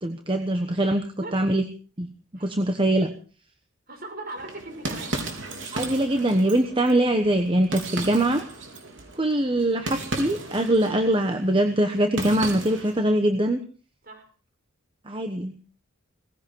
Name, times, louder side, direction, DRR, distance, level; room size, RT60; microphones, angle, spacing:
voice 1, 0.0-1.0 1.3-1.6 2.0-2.1 2.4-3.1 5.7-8.4 9.2-13.6 15.1-15.6, right 1 dB, 25° right, 6 dB, 1.2 m, -23 dB
voice 2, 3.9-5.2 14.0-14.3, right 2 dB, 45° right, 5 dB, 5.7 m, -39 dB
sound 1, 4.4-13.0, right 2 dB, 60° right, 4.2 m, -35 dB
19.0 x 16.5 x 4.7 m, 0.41 s
head